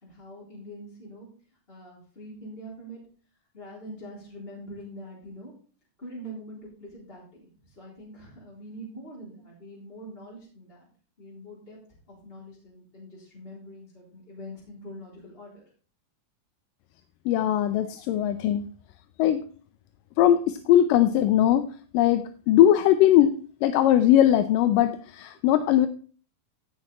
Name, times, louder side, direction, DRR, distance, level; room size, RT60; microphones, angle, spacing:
voice 1, 0.0-1.3 1.7-3.0 3.5-5.5 6.0-10.9 11.2-11.8 12.1-15.6, equal, 15° left, -6 dB, 3.7 m, -44 dB
voice 2, 17.3-18.7 19.2-19.4 20.2-21.6 21.9-23.3 23.6-25.9, left 11 dB, 80° left, 10 dB, 2.2 m, -20 dB
15.5 x 6.2 x 4.2 m, 0.42 s
omnidirectional pair, 4.1 m